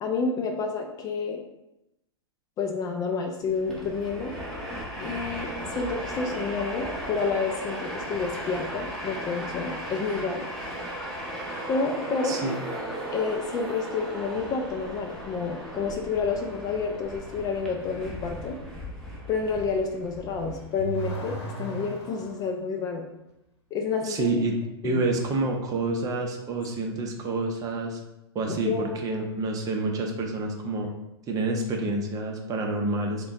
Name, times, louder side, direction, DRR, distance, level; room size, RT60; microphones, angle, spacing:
voice 1, 0.0-1.4 2.6-4.3 5.0-10.4 11.7-12.4 13.1-18.6 19.3-23.0 23.7-24.4 24.8-25.0 28.5-29.2, left 4 dB, 25° left, 3 dB, 0.4 m, -29 dB
Train, 3.5-21.1, right 1 dB, 5° left, 1.0 m, -36 dB
voice 2, 12.2-12.6 24.0-24.5 24.8-28.0 28.3-30.9 31.3-33.3, right 2 dB, 25° right, 1 dB, 0.6 m, -28 dB
Car / Accelerating revving vroom, 20.2-22.5, right 2 dB, 75° left, 0.8 m, -36 dB
3.6 x 2.2 x 3.5 m, 0.88 s
hypercardioid pair, 115°, 14 cm